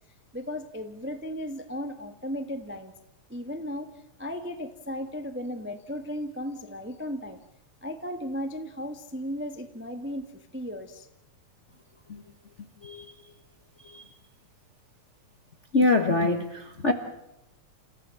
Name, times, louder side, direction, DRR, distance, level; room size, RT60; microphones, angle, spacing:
voice 1, 0.3-2.9 3.3-7.4 7.8-11.1, equal, 15° right, 0.4 m, -35 dB
voice 2, 15.7-16.9, left 3 dB, 50° left, 0.8 m, -24 dB
29.0 x 15.5 x 7.7 m
omnidirectional pair, 3.3 m